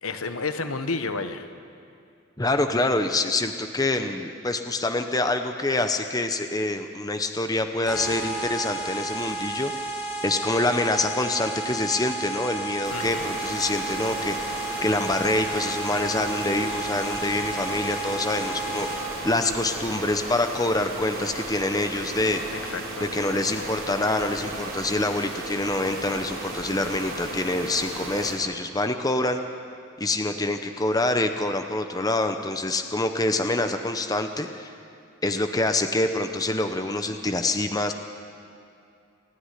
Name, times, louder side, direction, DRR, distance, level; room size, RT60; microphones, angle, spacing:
voice 1, 0.0-1.5 12.9-13.3 22.5-23.1, left 3 dB, 85° left, 9 dB, 1.2 m, -31 dB
voice 2, 2.4-9.7 10.2-14.4 14.8-18.9 19.2-22.4 23.0-29.4 30.0-34.7 35.2-37.9, left 2 dB, 15° left, 7 dB, 0.8 m, -26 dB
sound 1, 7.9-19.3, right 2 dB, 50° left, 4.8 m, -32 dB
sound 2, 12.8-28.3, right 2 dB, 75° right, 4.5 m, -35 dB
27.0 x 9.8 x 10.0 m, 2.5 s
head